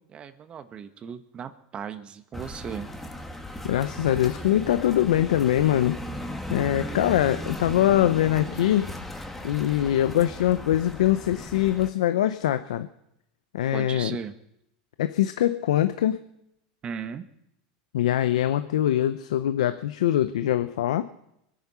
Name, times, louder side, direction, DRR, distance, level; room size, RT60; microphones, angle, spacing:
voice 1, 0.1-2.9 13.7-14.3 16.8-17.3, right 7 dB, 30° right, 10 dB, 1.3 m, -37 dB
sound 1, 2.3-11.9, equal, 5° left, 1.9 m, -37 dB
voice 2, 3.6-6.0 6.5-8.9 9.4-12.9 13.5-14.2 15.0-16.2 17.9-21.1, left 12 dB, 85° left, 11 dB, 0.7 m, -23 dB
23.5 x 9.4 x 5.6 m, 0.82 s
supercardioid pair, 115°, 3 cm